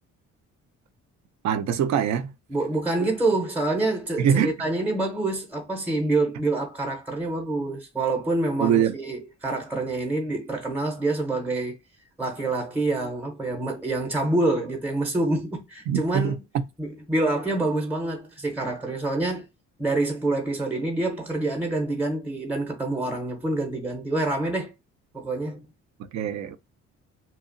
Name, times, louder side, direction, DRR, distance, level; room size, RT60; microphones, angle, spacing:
voice 1, 1.4-2.3 4.2-4.5 8.6-8.9 15.9-16.4 26.1-26.6, right 8 dB, 65° right, 0.4 m, -23 dB
voice 2, 2.5-11.7 12.2-16.3 16.8-19.4 19.8-24.7 25.1-25.6, right 2 dB, 5° right, 0.7 m, -26 dB
2.8 x 2.1 x 2.5 m
cardioid pair, 90°, 30 cm